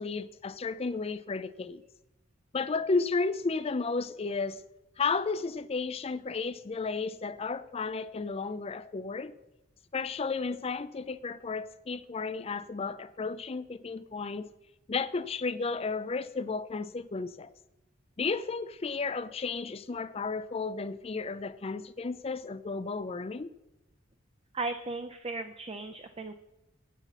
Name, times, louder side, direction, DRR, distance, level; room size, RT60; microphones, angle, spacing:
voice 1, 0.0-1.8 2.5-4.6 5.0-9.4 9.9-14.5 14.9-17.5 18.2-23.5, left 4 dB, 30° left, 0.4 m, -33 dB
voice 2, 24.5-26.3, right 3 dB, 25° right, 0.5 m, -36 dB
8.3 x 8.0 x 5.8 m
head